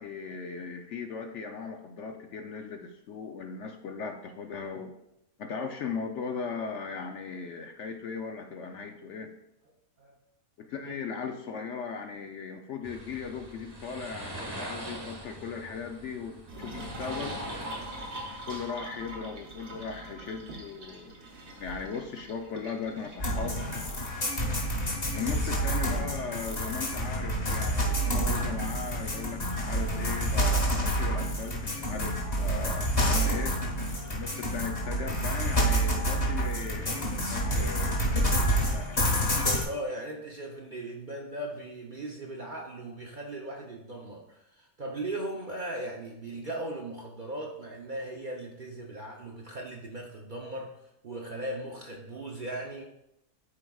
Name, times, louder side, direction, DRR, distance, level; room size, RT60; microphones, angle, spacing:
voice 1, 0.0-4.9 5.4-9.3 10.6-17.4 18.5-23.5 25.1-33.6 34.1-38.0 38.3-39.2, left 5 dB, 65° left, 4 dB, 0.8 m, -38 dB
sound 1, 12.8-18.7, right 1 dB, 20° right, 1.0 m, -43 dB
sound 2, 16.5-23.5, right 1 dB, 85° right, 1.7 m, -42 dB
sound 3, 23.2-39.6, right 1 dB, 40° left, 1.7 m, -28 dB
voice 2, 23.8-24.2 39.6-52.8, right 1 dB, 45° right, -1 dB, 0.6 m, -38 dB
12.0 x 4.6 x 2.3 m, 0.83 s
omnidirectional pair, 1.6 m